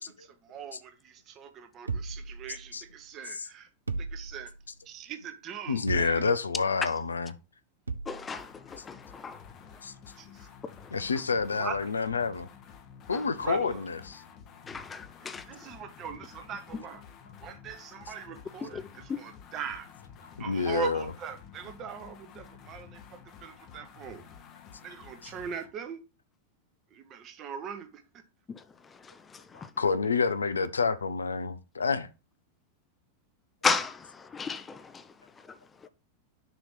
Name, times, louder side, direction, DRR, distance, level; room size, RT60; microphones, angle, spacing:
voice 1, 0.0-3.7 4.0-4.5 4.9-6.2 10.2-10.5 11.5-11.8 13.4-13.8 15.5-17.0 17.4-19.9 20.4-24.2 24.8-26.0 26.9-28.0, right 6 dB, 35° right, 1.0 m, -40 dB
sound 1, 1.9-3.0 3.9-4.8 5.9-6.6 7.9-8.4, right 4 dB, 80° right, 0.5 m, -36 dB
voice 2, 5.7-7.3 9.8-9.9 10.9-12.5 13.1-14.1 20.4-21.0 29.5-32.1, left 5 dB, 75° left, 0.5 m, -28 dB
voice 3, 8.1-9.4 10.6-11.0 13.1-13.2 14.7-15.4 18.7-18.8 19.1-19.2 28.5-28.6 28.9-29.7 33.6-35.1 35.5-35.6, left 5 dB, 20° left, 0.5 m, -34 dB
sound 2, 8.3-25.7, left 7 dB, 35° left, 0.9 m, -51 dB
6.8 x 3.0 x 5.7 m
figure-of-eight pair, 90°, 0 cm